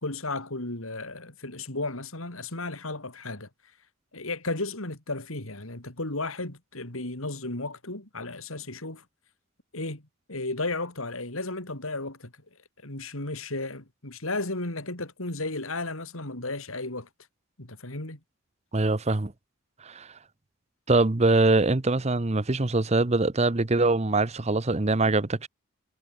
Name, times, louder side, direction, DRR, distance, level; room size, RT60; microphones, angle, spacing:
voice 1, 0.0-3.5 4.1-9.0 9.7-10.0 10.3-12.3 12.8-17.1 17.6-18.2, left 2 dB, 75° left, 4.0 m, -34 dB
voice 2, 18.7-19.3 19.8-20.1 20.9-25.5, right 2 dB, 30° right, 0.8 m, -23 dB
head